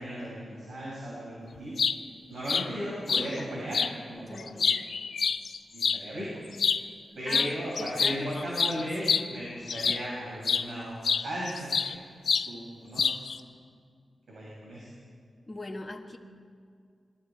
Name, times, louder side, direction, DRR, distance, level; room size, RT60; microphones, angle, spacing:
voice 1, 0.0-1.7 2.3-4.7 5.7-6.3 7.1-12.0 12.4-13.1 14.3-14.9, equal, 60° right, -6 dB, 6.8 m, -36 dB
sound 1, 1.6-2.0 2.5-2.7 3.1-3.3 3.7-3.9 4.4-6.0 6.5-6.8 7.3-7.5 7.8-10.1 10.4-10.7 11.0-11.9 12.3-12.5 13.0-13.4, left 6 dB, 70° left, 0.6 m, -27 dB
voice 2, 4.3-4.9 7.2-9.3 15.5-16.2, left 2 dB, 20° left, 1 dB, 1.4 m, -41 dB
26.5 x 21.5 x 4.7 m, 2.2 s
wide cardioid pair, 170°, 0 cm